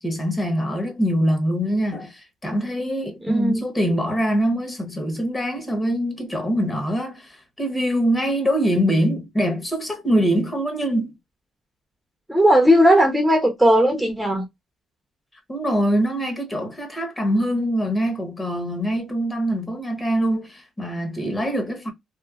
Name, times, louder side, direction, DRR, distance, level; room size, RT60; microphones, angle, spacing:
voice 1, 0.0-11.2 15.5-21.9, equal, 20° left, 1.0 m, -23 dB
voice 2, 3.3-3.6 12.3-14.5, equal, 5° right, 0.7 m, -17 dB
2.9 x 2.1 x 2.3 m
cardioid pair, 90°, 0 cm